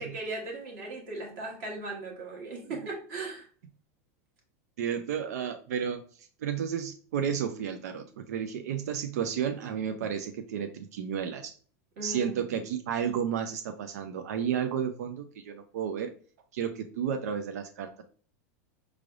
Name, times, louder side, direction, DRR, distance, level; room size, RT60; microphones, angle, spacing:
voice 1, 0.0-3.5 12.0-12.6, right 2 dB, 50° right, -1 dB, 1.2 m, -38 dB
voice 2, 4.8-6.0 6.4-11.5 12.0-16.1 16.5-18.0, right 8 dB, 85° right, 7 dB, 0.5 m, -32 dB
4.9 x 3.2 x 2.5 m, 0.42 s
supercardioid pair, 165°, 8 cm